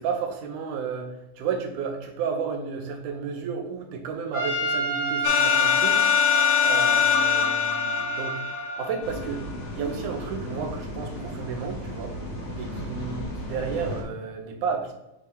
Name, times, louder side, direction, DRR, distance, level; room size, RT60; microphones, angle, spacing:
voice 1, 0.0-6.1 6.6-8.4 8.6-9.4 9.7-12.2 12.6-14.9, right 6 dB, 80° right, 4 dB, 2.3 m, -32 dB
Trumpet, 4.3-8.9, right 1 dB, 35° right, 1.5 m, -28 dB
sound 1, 5.2-9.1, left 9 dB, 80° left, 1.4 m, -23 dB
sound 2, 9.0-14.0, equal, 35° left, 1.2 m, -35 dB
6.4 x 2.9 x 5.1 m, 0.92 s
omnidirectional pair, 3.5 m